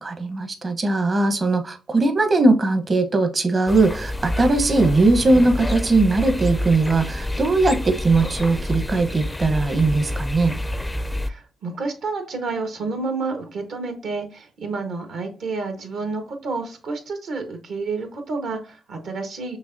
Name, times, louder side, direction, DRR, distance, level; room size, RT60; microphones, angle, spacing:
voice 1, 0.0-10.6, right 3 dB, 45° right, 7 dB, 0.9 m, -19 dB
sound 1, 3.7-11.3, left 1 dB, 15° left, 0.4 m, -28 dB
voice 2, 11.2-19.6, right 3 dB, 75° right, 6 dB, 1.2 m, -30 dB
6.2 x 2.9 x 2.6 m, 0.35 s
supercardioid pair, 60°, 0 cm